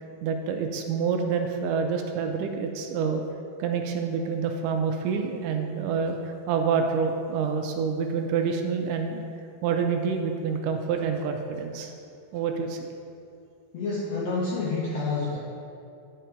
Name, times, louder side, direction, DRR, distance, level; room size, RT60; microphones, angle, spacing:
voice 1, 0.2-3.2 3.6-6.2 6.5-9.2 9.6-11.9 12.3-12.9, right 6 dB, 80° right, 4 dB, 2.0 m, -27 dB
voice 2, 13.7-15.4, left 3 dB, 75° left, -6 dB, 1.5 m, -28 dB
10.0 x 4.7 x 4.4 m, 2.6 s
omnidirectional pair, 3.9 m